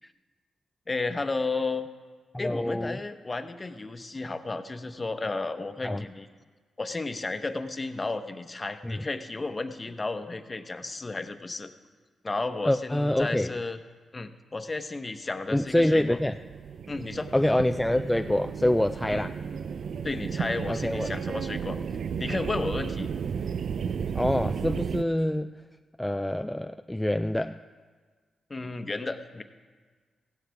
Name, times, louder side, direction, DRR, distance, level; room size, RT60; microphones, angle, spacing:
voice 1, 0.9-1.9 2.4-6.3 6.8-11.7 12.2-13.8 14.1-16.2 16.9-17.3 19.1-19.2 20.0-21.8 22.2-23.1 28.5-29.4, left 3 dB, 30° left, 9 dB, 1.0 m, -33 dB
voice 2, 2.3-3.0 5.8-6.0 8.8-9.0 12.6-13.5 15.5-16.4 17.3-19.3 20.7-21.1 24.1-25.5 26.0-27.6, left 1 dB, 10° left, 8 dB, 0.4 m, -26 dB
sound 1, 15.4-25.0, right 6 dB, 70° right, 0.5 m, -33 dB
16.0 x 12.5 x 3.5 m, 1.5 s
supercardioid pair, 50°, 0 cm